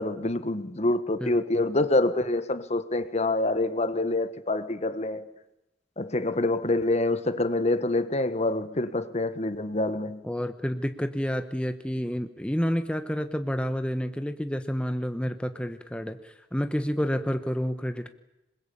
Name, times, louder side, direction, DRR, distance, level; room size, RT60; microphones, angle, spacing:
voice 1, 0.0-5.2 6.0-10.2, left 2 dB, 40° left, 1.4 m, -26 dB
voice 2, 10.2-18.1, equal, 5° left, 1.1 m, -29 dB
26.5 x 21.5 x 8.6 m
head